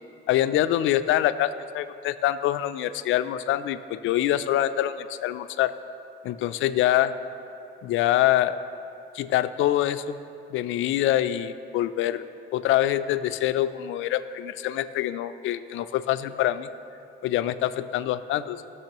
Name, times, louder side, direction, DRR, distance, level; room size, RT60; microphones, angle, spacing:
voice 1, 0.3-5.7 6.2-7.1 7.8-8.6 9.1-10.2 10.5-12.3 12.5-16.7 17.2-18.7, left 13 dB, 85° left, 13 dB, 0.4 m, -25 dB
16.0 x 6.1 x 3.0 m, 2.7 s
cardioid pair, 90°, 20 cm